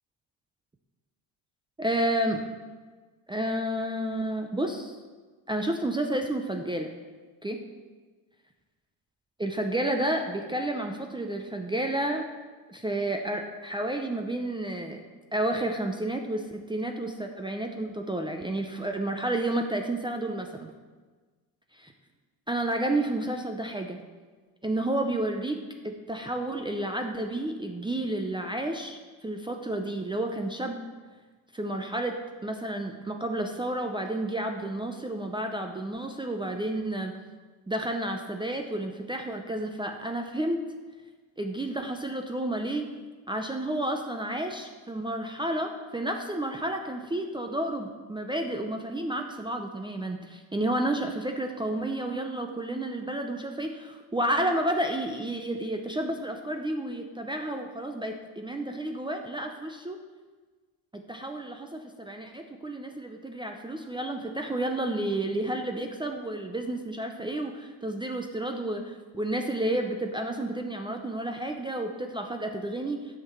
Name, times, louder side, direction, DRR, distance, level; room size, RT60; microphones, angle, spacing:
voice 1, 1.8-2.4 3.3-5.0 5.5-6.9 7.4-7.6 9.4-12.2 12.7-15.0 15.3-20.7 21.8-21.9 22.5-24.0 24.6-25.6 25.8-30.8 31.5-37.2 37.7-40.6 41.4-42.9 43.3-60.0 60.9-73.0, right 1 dB, 10° right, 3 dB, 0.6 m, -31 dB
7.6 x 5.9 x 6.8 m, 1.4 s
cardioid pair, 110°, 46 cm